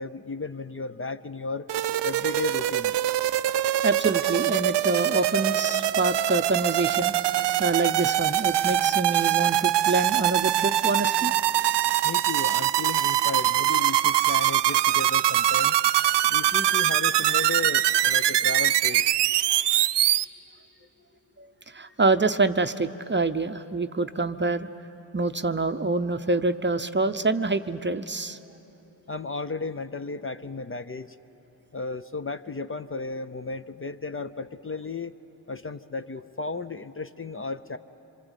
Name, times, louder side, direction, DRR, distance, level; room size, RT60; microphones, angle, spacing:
voice 1, 0.0-1.7 2.0-2.9 12.0-15.7 16.3-19.1 29.1-31.1 31.7-35.1 35.5-37.8, left 3 dB, 30° left, 11 dB, 0.6 m, -34 dB
sound 1, 1.7-20.2, right 13 dB, 70° right, 0.5 m, -23 dB
voice 2, 3.8-7.2 7.6-11.3 21.4-21.5 21.7-24.7 25.1-28.4, right 3 dB, 25° right, 9 dB, 0.7 m, -26 dB
26.0 x 24.0 x 8.1 m, 3.0 s
cardioid pair, 70°, 44 cm